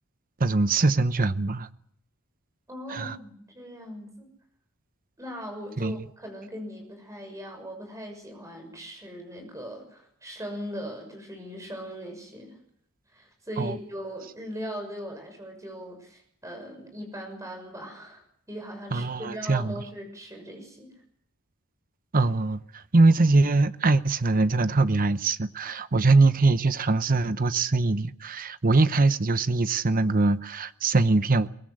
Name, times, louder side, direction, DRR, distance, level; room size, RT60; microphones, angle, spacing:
voice 1, 0.4-1.7 2.9-3.2 5.8-6.0 13.6-13.8 18.9-19.8 22.1-31.5, right 3 dB, 40° right, 0.8 m, -22 dB
voice 2, 2.7-4.3 5.2-12.6 13.1-21.0, equal, 15° right, 6.4 m, -39 dB
23.0 x 18.5 x 7.9 m
head